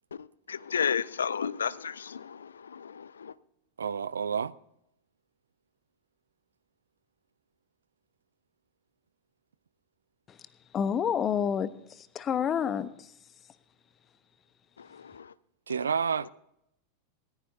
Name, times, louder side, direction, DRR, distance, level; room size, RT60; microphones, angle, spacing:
voice 1, 0.2-3.3 14.8-15.3, left 7 dB, 70° left, 0.4 m, -33 dB
voice 2, 3.8-4.5 15.7-16.3, right 6 dB, 70° right, 0.4 m, -29 dB
voice 3, 10.7-13.1, left 8 dB, 25° left, 0.9 m, -29 dB
20.0 x 14.0 x 2.7 m
figure-of-eight pair, 90°, 0 cm